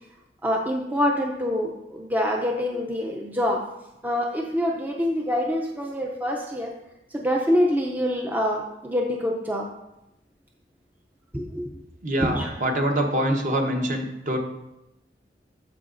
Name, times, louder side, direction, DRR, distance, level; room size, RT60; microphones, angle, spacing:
voice 1, 0.4-3.6 4.0-6.7 7.1-9.7 11.3-11.7 12.2-12.5, equal, 10° right, 0 dB, 0.5 m, -25 dB
voice 2, 12.0-14.4, right 1 dB, 45° right, 2 dB, 1.0 m, -25 dB
13.5 x 4.8 x 2.5 m, 0.91 s
head